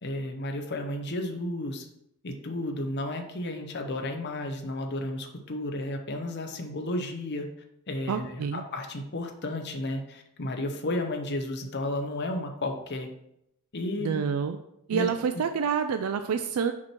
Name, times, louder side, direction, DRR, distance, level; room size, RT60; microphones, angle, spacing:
voice 1, 0.0-1.9 2.2-7.5 7.9-13.1 13.7-14.2 14.9-15.1 15.3-15.4, left 1 dB, 50° left, 4 dB, 0.8 m, -33 dB
voice 2, 8.1-8.6 14.0-14.6 14.9-16.7, right 6 dB, 80° right, 7 dB, 0.4 m, -28 dB
6.0 x 4.5 x 4.4 m, 0.79 s
head